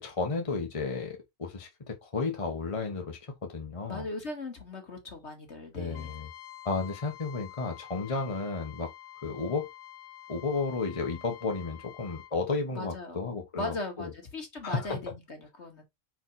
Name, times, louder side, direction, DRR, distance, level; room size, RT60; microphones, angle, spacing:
voice 1, 0.0-4.1 5.7-6.3 6.6-8.9 9.2-9.7 10.3-14.1 14.6-15.0, left 4 dB, 25° left, 1.1 m, -33 dB
voice 2, 3.9-6.2 12.7-13.3 13.5-15.8, left 2 dB, 55° left, 2.3 m, -38 dB
Trumpet, 5.9-12.3, left 13 dB, 85° left, 1.1 m, -48 dB
5.2 x 4.7 x 4.2 m
omnidirectional pair, 1.4 m